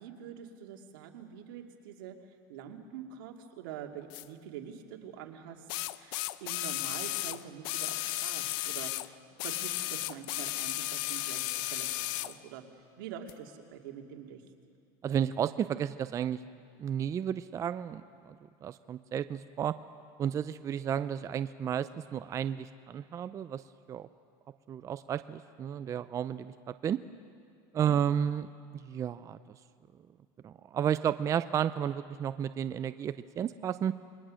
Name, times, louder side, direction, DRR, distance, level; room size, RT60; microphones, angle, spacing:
voice 1, 0.0-2.2 2.5-5.6 6.0-12.6 13.0-14.4 27.7-28.0, right 8 dB, 90° right, 3 dB, 2.3 m, -45 dB
sound 1, 4.1-4.2 5.7-9.1 9.4-12.3 13.3-13.4, left 18 dB, 75° left, 0.6 m, -34 dB
voice 2, 15.0-16.4 16.8-19.8 20.2-23.6 23.9-24.1 24.7-27.0 27.7-28.5 28.7-29.4 30.4-33.9, right 9 dB, 30° right, 12 dB, 0.5 m, -32 dB
28.0 x 21.5 x 6.4 m, 2.3 s
supercardioid pair, 135°, 11 cm